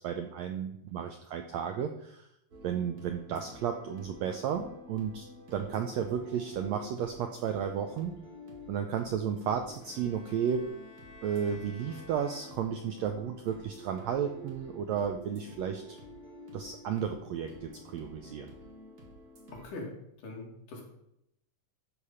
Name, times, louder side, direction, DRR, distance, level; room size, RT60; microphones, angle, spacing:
voice 1, 0.0-2.3 2.6-5.2 5.5-8.1 8.7-10.7 11.2-16.0 16.5-18.5, right 8 dB, 85° right, 5 dB, 1.5 m, -33 dB
sound 1, 2.5-19.7, equal, 40° right, 1.7 m, -50 dB
Bowed string instrument, 9.8-13.0, left 3 dB, 40° left, 1.7 m, -54 dB
voice 2, 19.5-19.9 20.2-20.8, left 2 dB, 75° left, -2 dB, 3.9 m, -42 dB
11.5 x 5.0 x 5.6 m, 0.80 s
omnidirectional pair, 3.8 m